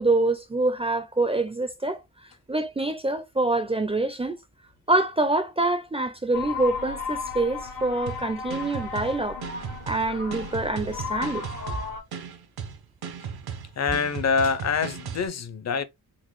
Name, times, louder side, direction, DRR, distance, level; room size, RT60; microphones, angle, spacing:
voice 1, 0.0-2.0 2.5-4.4 4.9-9.4 9.9-11.4, right 2 dB, 15° right, 0.4 m, -25 dB
sound 1, 6.3-12.0, left 6 dB, 80° left, 1.3 m, -35 dB
sound 2, 8.1-15.3, right 7 dB, 85° right, 0.7 m, -37 dB
voice 2, 13.8-15.8, left 5 dB, 45° left, 0.6 m, -25 dB
3.9 x 2.0 x 3.1 m
wide cardioid pair, 100°, 37 cm